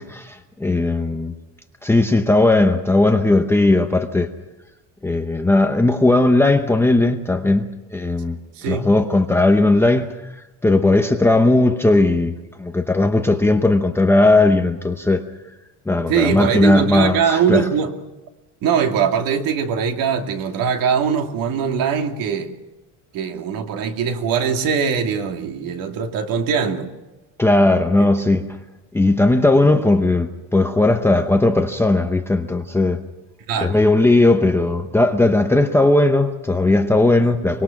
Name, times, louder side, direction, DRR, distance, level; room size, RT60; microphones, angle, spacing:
voice 1, 0.0-1.3 1.8-4.3 5.0-8.4 8.6-10.1 10.6-15.2 15.9-17.7 27.4-28.5 28.9-33.0 33.6-37.6, left 2 dB, 5° left, 5 dB, 0.8 m, -17 dB
voice 2, 8.6-8.9 16.1-17.9 18.6-22.5 23.1-26.9 28.0-28.1 33.5-33.8, right 7 dB, 55° right, 4 dB, 2.7 m, -21 dB
24.5 x 22.0 x 5.9 m, 1.1 s
cardioid pair, 170°, 41 cm